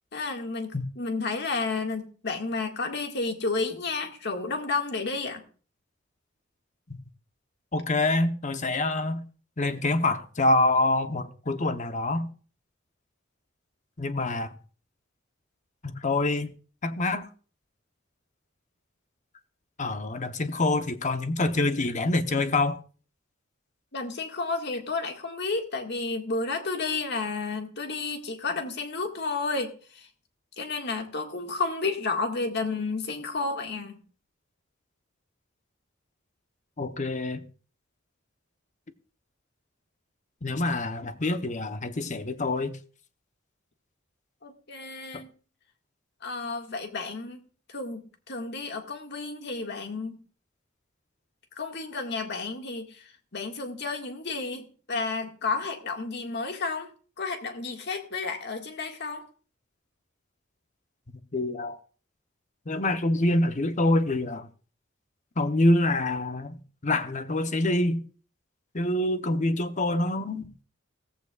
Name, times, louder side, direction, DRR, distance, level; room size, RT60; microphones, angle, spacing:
voice 1, 0.1-5.4 23.9-30.1 30.6-34.0 44.4-45.3 46.2-47.4 47.7-50.2 51.6-56.9 57.2-59.2, left 3 dB, 60° left, 1.8 m, -31 dB
voice 2, 7.7-9.2 9.6-12.3 14.0-14.5 15.8-16.6 16.8-17.3 19.8-22.8 36.8-37.4 40.4-42.8 61.3-61.8 62.7-64.5 65.4-66.6 66.8-68.0 68.7-70.6, left 2 dB, 40° left, 0.9 m, -26 dB
16.0 x 15.0 x 2.4 m
head